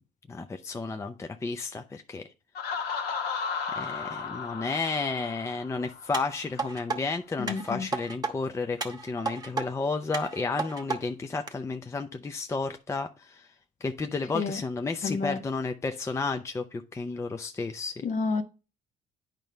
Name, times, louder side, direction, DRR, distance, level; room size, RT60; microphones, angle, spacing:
voice 1, 0.3-2.2 3.7-13.5 13.8-18.0, left 4 dB, 15° left, 0.5 m, -32 dB
Laughter, 2.5-6.2, left 5 dB, 75° left, 1.2 m, -34 dB
sound 1, 6.1-7.0 7.5-8.3 8.8-9.7 10.1-11.0 11.5-11.6, right 4 dB, 20° right, 1.0 m, -33 dB
voice 2, 7.4-7.9 14.3-14.6 15.0-15.4 18.0-18.4, left 4 dB, 45° left, 1.0 m, -30 dB
9.0 x 5.2 x 3.4 m
cardioid pair, 110°, 17 cm